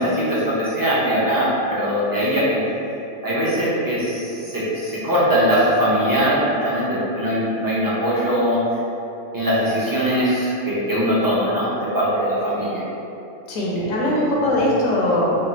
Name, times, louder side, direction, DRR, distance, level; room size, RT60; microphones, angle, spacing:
voice 1, 0.0-2.6 3.2-6.4 6.6-8.6 9.3-12.8, equal, 30° right, -10 dB, 0.3 m, -21 dB
voice 2, 13.5-15.4, left 1 dB, 70° left, -4 dB, 1.0 m, -20 dB
3.3 x 2.3 x 4.0 m, 2.9 s
omnidirectional pair, 1.5 m